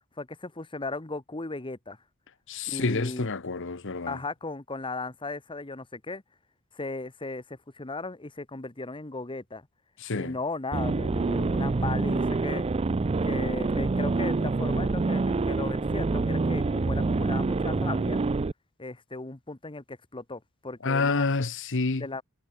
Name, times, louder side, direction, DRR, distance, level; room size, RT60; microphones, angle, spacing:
voice 1, 0.2-2.0 2.7-3.3 4.1-6.2 6.7-9.6 10.1-12.7 13.2-18.2 18.8-21.5 21.9-22.2, left 3 dB, 25° left, 1.3 m, -36 dB
voice 2, 2.5-4.2 10.0-10.4 20.8-22.1, left 3 dB, 60° left, 1.2 m, -28 dB
sound 1, 10.7-18.5, right 3 dB, 30° right, 0.4 m, -26 dB
head